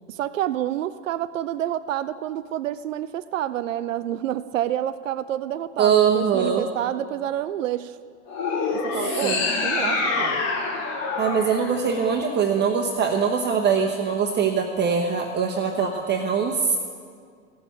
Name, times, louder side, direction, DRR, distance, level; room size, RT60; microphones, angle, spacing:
voice 1, 0.1-8.0 8.7-10.4, right 12 dB, 85° right, 14 dB, 0.5 m, -28 dB
voice 2, 5.8-6.6 9.0-9.5 11.2-16.8, right 6 dB, 25° right, 2 dB, 1.0 m, -22 dB
sound 1, 8.3-12.6, left 3 dB, 45° left, 2.3 m, -26 dB
15.5 x 6.9 x 7.1 m, 2.1 s
hypercardioid pair, 95°, 38 cm